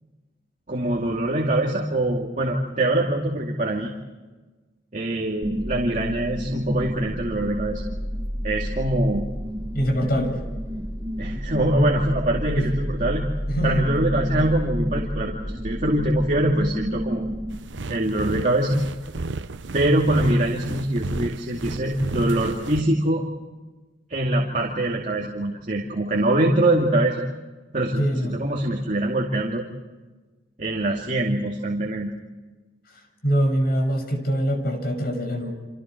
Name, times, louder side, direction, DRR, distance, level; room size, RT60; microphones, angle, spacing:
voice 1, 0.7-3.9 4.9-7.8 8.4-9.3 11.2-13.3 13.6-17.3 17.9-18.8 19.7-23.2 24.1-27.2 27.7-29.7 30.6-32.2, right 1 dB, 45° right, -1 dB, 2.4 m, -23 dB
sound 1, 5.4-17.6, equal, 20° right, 1.4 m, -30 dB
voice 2, 9.7-10.5 12.6-12.7 13.5-13.9 28.0-28.4 33.2-35.6, equal, 55° left, 4 dB, 6.3 m, -23 dB
sound 2, 17.5-22.8, right 3 dB, 85° right, 0.8 m, -32 dB
29.5 x 27.0 x 4.6 m, 1.2 s
head